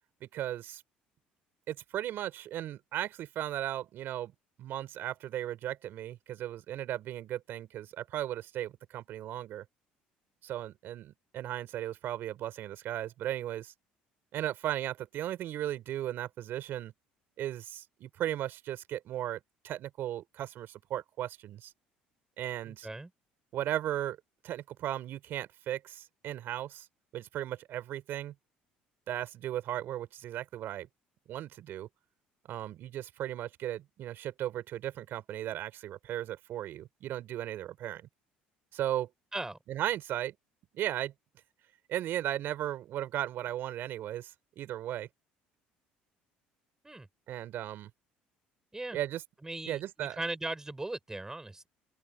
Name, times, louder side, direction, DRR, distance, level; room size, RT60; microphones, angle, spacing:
voice 1, 0.2-0.8 1.7-4.3 4.6-9.6 10.4-13.7 14.3-16.9 17.4-19.4 19.6-21.7 22.4-22.9 23.5-24.2 24.4-26.9 27.1-28.3 29.1-30.9 31.3-31.9 32.5-38.1 38.7-39.1 39.7-40.3 40.7-41.1 41.9-45.1 47.3-47.9 48.9-49.2 49.6-50.2, right 12 dB, 65° right, 5.1 m, -36 dB
voice 2, 22.7-23.1 39.3-39.6 46.8-47.1 48.7-49.0 49.4-51.7, right 2 dB, 15° right, 6.3 m, -38 dB
open air
supercardioid pair, 70°, 4 cm